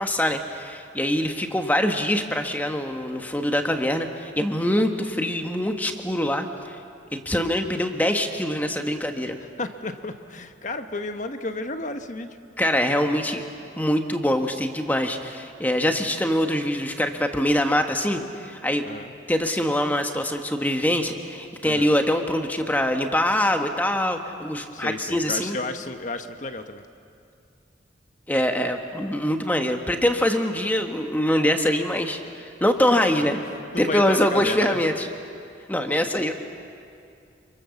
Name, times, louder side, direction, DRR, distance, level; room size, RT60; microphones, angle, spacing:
voice 1, 0.0-6.8 7.1-9.4 12.6-13.4 13.8-18.9 19.3-25.6 28.3-33.4 33.8-35.1 35.7-36.3, left 1 dB, 10° left, 5 dB, 1.4 m, -24 dB
voice 2, 9.6-12.4 18.8-19.1 21.6-22.0 24.7-26.8 33.0-33.1 33.7-34.8, left 2 dB, 40° left, 7 dB, 1.2 m, -32 dB
28.0 x 24.5 x 7.2 m, 2.5 s
head